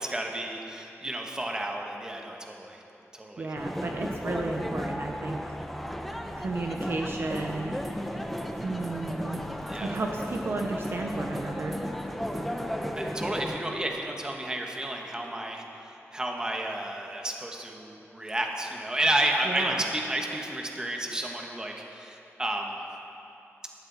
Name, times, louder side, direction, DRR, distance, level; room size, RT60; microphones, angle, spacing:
voice 1, 0.0-2.8 3.1-3.5 9.7-10.0 13.0-22.8, right 1 dB, 15° right, 1 dB, 1.3 m, -31 dB
voice 2, 3.4-5.4 6.4-7.8 8.6-9.4 9.8-11.8 19.4-19.9, right 3 dB, 50° right, 2 dB, 0.9 m, -33 dB
sound 1, 3.6-13.6, equal, ahead, 0.8 m, -34 dB
17.5 x 12.5 x 4.1 m, 2.9 s
wide cardioid pair, 140°, 5 cm